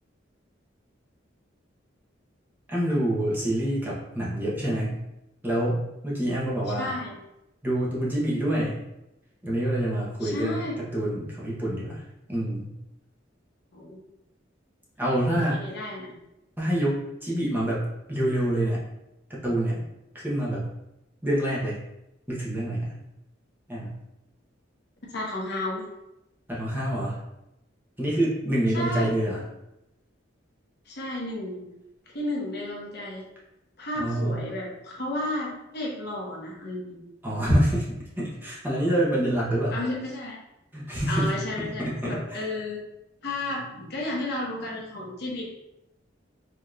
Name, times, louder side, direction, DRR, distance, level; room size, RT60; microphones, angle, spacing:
voice 1, 2.7-5.0 5.4-6.9 7.6-8.8 9.4-10.6 10.9-12.0 12.3-12.7 15.0-15.6 16.6-17.8 18.1-18.8 19.3-19.8 20.1-20.6 21.2-21.8 22.3-22.9 23.7-23.9 26.5-27.2 28.0-29.4 34.0-34.4 37.2-37.9 38.2-39.8 40.7-41.3 41.8-42.4, right 1 dB, 10° right, -7 dB, 0.9 m, -26 dB
voice 2, 6.8-7.2 10.2-10.8 13.7-14.0 15.5-16.1 25.1-25.8 28.7-29.2 30.9-31.7 32.1-33.2 33.8-37.0 39.7-40.4 41.1-42.8 43.2-45.4, left 1 dB, 60° left, -3 dB, 1.0 m, -32 dB
4.9 x 2.9 x 2.4 m, 0.89 s
head